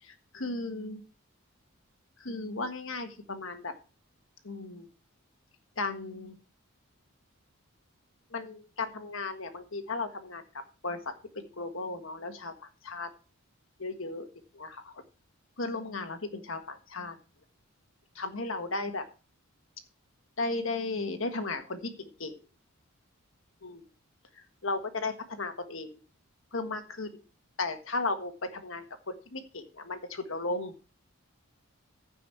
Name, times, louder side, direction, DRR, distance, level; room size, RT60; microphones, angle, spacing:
voice 1, 0.3-1.0 2.2-3.7 4.4-4.9 5.8-6.4 8.3-10.4 10.8-11.1 11.6-12.5 12.8-13.1 13.8-14.3 14.5-14.8 15.6-17.1 18.1-19.0 20.4-22.4 23.6-23.8 24.6-26.0 26.5-27.1 27.6-28.8 29.3-30.7, left 3 dB, 60° left, 8 dB, 1.5 m, -35 dB
15.0 x 5.5 x 4.6 m, 0.34 s
head